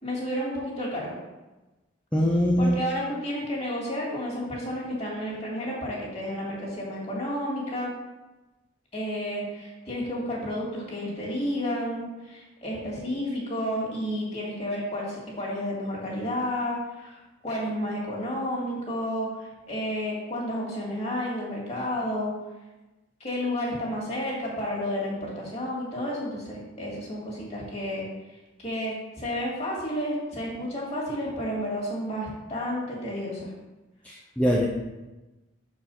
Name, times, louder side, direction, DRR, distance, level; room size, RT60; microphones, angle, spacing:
voice 1, 0.0-1.1 2.6-7.9 8.9-17.2 17.4-22.3 23.2-28.0 28.6-33.5, equal, 35° left, -4 dB, 2.3 m, -31 dB
voice 2, 2.1-2.8 34.0-34.7, equal, 5° left, -4 dB, 0.6 m, -22 dB
6.7 x 4.9 x 5.6 m, 1.1 s
head